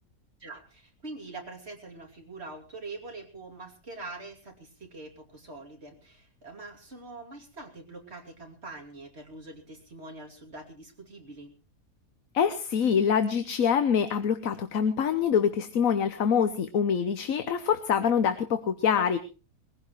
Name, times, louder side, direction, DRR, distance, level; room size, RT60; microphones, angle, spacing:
voice 1, 0.4-11.5, right 2 dB, 45° right, 2 dB, 3.1 m, -44 dB
voice 2, 12.3-19.2, left 7 dB, 70° left, 10 dB, 1.4 m, -25 dB
21.5 x 16.0 x 3.2 m, 0.33 s
omnidirectional pair, 1.5 m